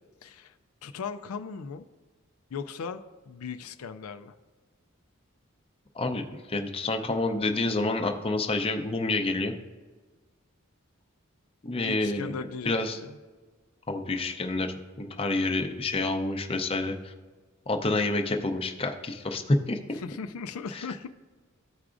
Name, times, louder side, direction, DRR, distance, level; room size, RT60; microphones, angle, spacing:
voice 1, 0.2-0.6 0.8-1.9 2.5-3.0 3.3-4.3 11.8-13.2 19.9-21.1, left 5 dB, 80° left, 8 dB, 0.4 m, -38 dB
voice 2, 6.0-9.5 11.6-12.3 12.7-13.0 13.9-17.1 17.7-20.0 20.7-20.9, left 2 dB, 25° left, 4 dB, 0.6 m, -28 dB
14.0 x 4.7 x 2.5 m, 1.3 s
head